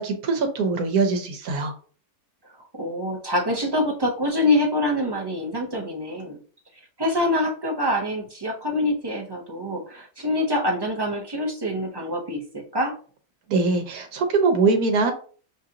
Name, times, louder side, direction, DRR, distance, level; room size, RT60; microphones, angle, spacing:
voice 1, 0.0-1.7 13.5-15.1, right 4 dB, 75° right, 5 dB, 1.3 m, -22 dB
voice 2, 2.7-6.4 7.0-13.0, left 1 dB, 30° right, 0 dB, 0.4 m, -25 dB
6.2 x 2.5 x 2.8 m, 0.42 s
omnidirectional pair, 1.6 m